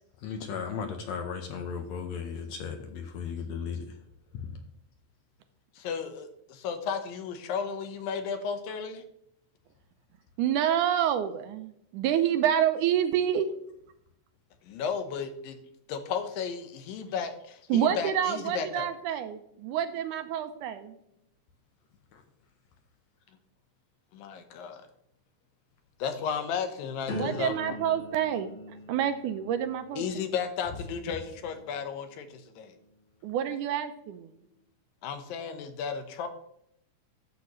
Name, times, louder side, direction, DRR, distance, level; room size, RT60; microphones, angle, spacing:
voice 1, 0.2-4.0 4.3-4.5 22.1-22.2, left 6 dB, 70° left, 5 dB, 1.7 m, -36 dB
voice 2, 5.8-9.0 14.6-15.6 15.9-18.9 24.1-24.9 26.0-27.8 29.9-32.7 35.0-36.3, left 6 dB, 90° left, 8 dB, 2.8 m, -34 dB
voice 3, 10.4-13.5 17.7-21.0 27.1-30.0 33.2-34.3, right 10 dB, 80° right, 9 dB, 2.0 m, -28 dB
sound 1, 27.1-32.9 33.5-33.9, left 1 dB, 55° left, 3.4 m, -43 dB
12.0 x 8.2 x 3.1 m, 0.74 s
omnidirectional pair, 3.9 m